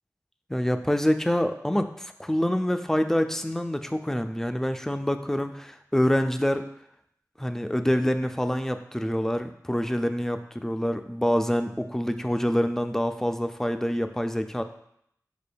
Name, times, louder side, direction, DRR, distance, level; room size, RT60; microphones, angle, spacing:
voice 1, 0.5-6.6 7.4-14.6, equal, 5° left, 8 dB, 0.3 m, -26 dB
5.0 x 4.7 x 2.2 m, 0.73 s
wide cardioid pair, 55°, 6 cm